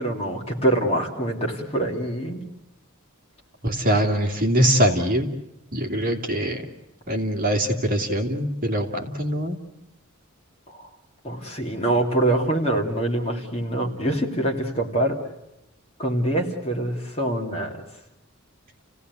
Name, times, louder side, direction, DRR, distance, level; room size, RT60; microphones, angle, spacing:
voice 1, 0.0-2.4 10.7-10.9 11.2-15.2 16.0-17.8, right 1 dB, 30° left, 1 dB, 2.7 m, -25 dB
voice 2, 3.6-5.3 5.7-6.6 7.1-9.6, equal, 40° right, 3 dB, 2.6 m, -23 dB
29.5 x 17.0 x 9.5 m, 0.91 s
head